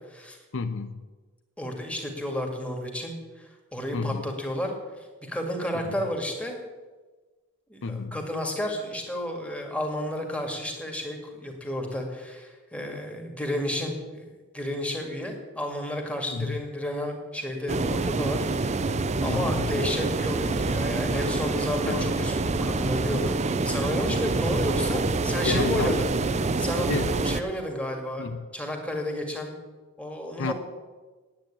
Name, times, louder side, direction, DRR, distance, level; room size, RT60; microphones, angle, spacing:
voice 1, 0.5-1.0 3.9-4.3 5.8-6.0 7.8-8.2 16.3-16.6 19.3-19.8 21.9-22.1 25.4-26.0 26.9-27.2 28.2-28.5 30.4-30.5, left 4 dB, 60° left, 10 dB, 0.6 m, -31 dB
voice 2, 1.6-6.5 7.7-23.3 23.6-26.1 26.6-28.3 28.5-29.5 30.0-30.5, left 1 dB, 5° left, 2 dB, 2.0 m, -32 dB
sound 1, 17.7-27.4, right 3 dB, 30° right, 0.5 m, -26 dB
9.2 x 9.1 x 8.9 m, 1.3 s
head